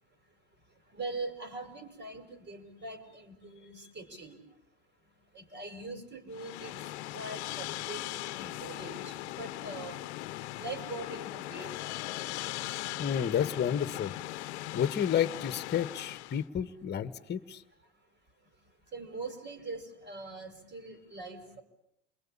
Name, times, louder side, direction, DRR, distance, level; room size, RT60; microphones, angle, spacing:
voice 1, 0.9-4.4 5.4-6.8 7.1-8.0 8.3-10.0 10.6-11.8 18.9-21.6, right 3 dB, 30° right, 9 dB, 5.5 m, -42 dB
sound 1, 6.3-16.4, left 17 dB, 75° left, 1.0 m, -39 dB
voice 2, 13.0-14.1 14.7-17.6, left 9 dB, 30° left, 12 dB, 1.7 m, -30 dB
28.5 x 21.5 x 8.8 m, 0.77 s
hypercardioid pair, 90°, 34 cm